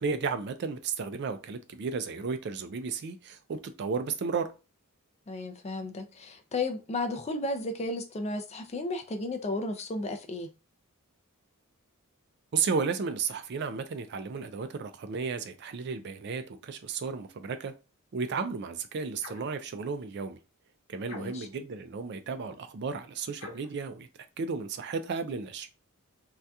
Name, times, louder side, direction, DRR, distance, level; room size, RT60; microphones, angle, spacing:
voice 1, 0.0-4.5 12.5-17.7 18.1-20.4 20.9-24.1 24.4-25.7, right 5 dB, 50° right, 0.4 m, -33 dB
voice 2, 5.3-10.5 21.1-21.5, left 2 dB, 30° left, 0.4 m, -33 dB
sound 1, 19.2-19.6 21.0-21.6 23.4-23.8, left 3 dB, 75° left, 0.9 m, -46 dB
2.7 x 2.3 x 3.4 m
head